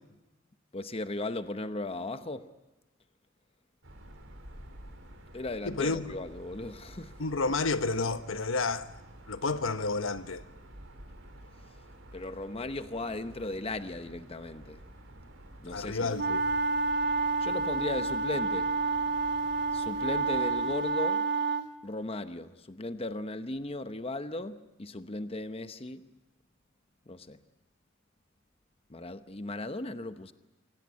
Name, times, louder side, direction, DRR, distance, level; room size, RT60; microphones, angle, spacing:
voice 1, 0.7-2.5 5.3-7.2 12.1-14.8 15.6-16.4 17.4-18.7 19.7-21.3 21.8-26.1 27.1-27.4 28.9-30.3, left 2 dB, 30° left, 0.9 m, -37 dB
sound 1, 3.8-20.8, right 1 dB, 85° right, 4.3 m, -50 dB
voice 2, 5.6-6.1 7.2-8.9 9.3-10.4 15.7-16.4, left 3 dB, 85° left, 1.0 m, -30 dB
sound 2, 16.2-21.7, right 3 dB, 60° right, 1.2 m, -29 dB
25.5 x 17.5 x 9.4 m
head